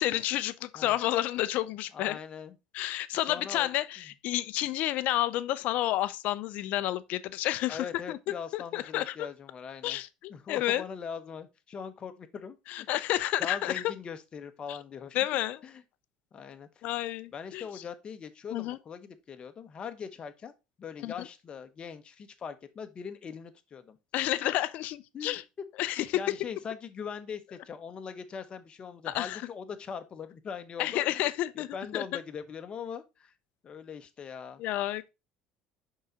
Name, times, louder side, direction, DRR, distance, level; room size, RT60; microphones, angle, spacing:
voice 1, 0.0-2.2 2.7-8.2 8.5-9.3 9.8-10.8 12.7-13.8 14.7-14.8 15.1-15.6 16.8-17.6 18.5-18.8 21.0-21.3 24.1-25.4 25.8-26.2 29.1-29.4 30.8-32.0 34.6-35.1, left 15 dB, 65° left, 0.5 m, -30 dB
voice 2, 1.9-2.5 3.3-3.7 7.7-10.0 10.3-12.9 13.4-15.2 15.6-15.8 16.3-16.7 17.3-20.5 20.8-24.0 25.1-25.4 26.0-31.3 31.5-33.3 33.6-34.6, left 6 dB, 35° left, 1.0 m, -41 dB
5.5 x 3.9 x 4.4 m
supercardioid pair, 95°, 3 cm